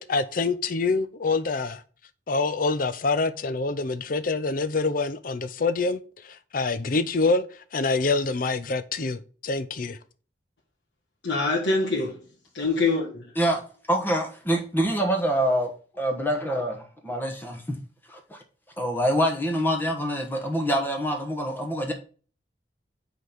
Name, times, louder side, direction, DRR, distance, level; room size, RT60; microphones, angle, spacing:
voice 1, 0.0-1.8 2.3-10.0, left 3 dB, 50° left, 0.6 m, -26 dB
voice 2, 11.2-12.2 12.5-13.2, left 3 dB, 85° left, 1.6 m, -24 dB
voice 3, 13.9-17.8 18.1-18.4 18.8-21.9, equal, 10° left, 1.2 m, -26 dB
5.1 x 4.0 x 6.0 m
head